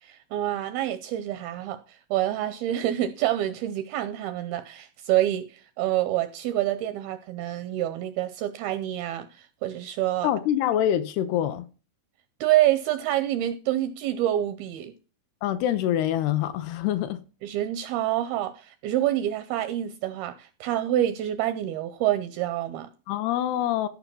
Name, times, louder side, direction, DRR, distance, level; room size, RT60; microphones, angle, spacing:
voice 1, 0.0-10.3 12.4-14.9 17.4-22.9, right 13 dB, 80° right, 2.2 m, -27 dB
voice 2, 10.2-11.7 15.4-17.2 23.1-23.9, left 11 dB, 80° left, 2.5 m, -25 dB
14.0 x 5.4 x 6.0 m
omnidirectional pair, 5.0 m